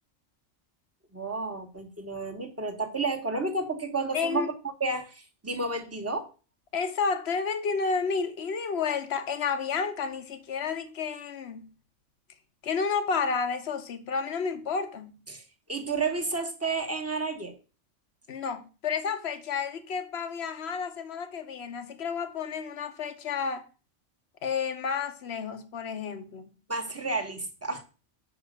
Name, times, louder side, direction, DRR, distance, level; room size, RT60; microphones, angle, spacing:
voice 1, 1.1-4.5 4.8-6.3 15.3-15.4 15.7-17.5 26.7-27.8, right 3 dB, 15° right, 1.1 m, -31 dB
voice 2, 4.1-4.5 6.7-11.7 12.6-15.2 18.3-23.7 24.4-26.6, left 5 dB, 60° left, 1.2 m, -31 dB
5.8 x 5.1 x 6.5 m
omnidirectional pair, 1.2 m